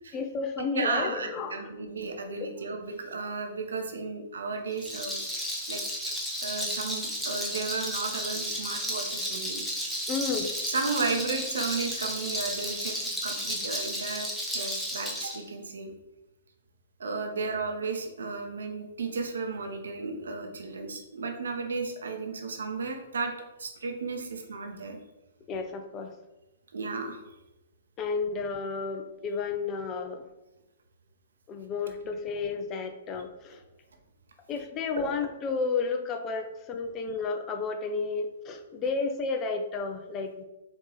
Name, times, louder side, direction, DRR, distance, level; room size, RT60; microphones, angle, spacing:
voice 1, 0.1-1.7 2.4-2.5 10.1-10.5 25.5-26.1 28.0-30.2 31.5-33.6 34.5-40.4, left 4 dB, 25° left, 6 dB, 0.5 m, -32 dB
voice 2, 0.7-5.2 5.7-5.8 6.4-9.9 10.7-14.3 14.5-15.9 17.0-23.3 23.6-25.0 26.7-27.2 34.9-35.1, right 4 dB, 70° right, 4 dB, 0.7 m, -34 dB
Rattle, 4.7-15.4, equal, ahead, 0.8 m, -33 dB
4.4 x 2.8 x 3.9 m, 0.99 s
figure-of-eight pair, 115°, 0 cm